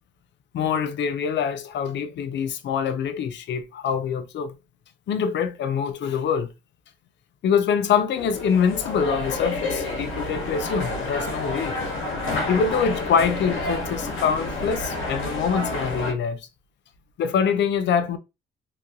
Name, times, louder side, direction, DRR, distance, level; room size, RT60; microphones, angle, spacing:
voice 1, 0.5-4.6 5.1-6.5 7.4-11.7 12.5-16.5 17.2-18.2, left 7 dB, 65° left, 0.5 m, -24 dB
sound 1, 8.1-16.1, left 2 dB, 80° left, 1.1 m, -29 dB
3.0 x 2.7 x 2.5 m
cardioid pair, 90°, 20 cm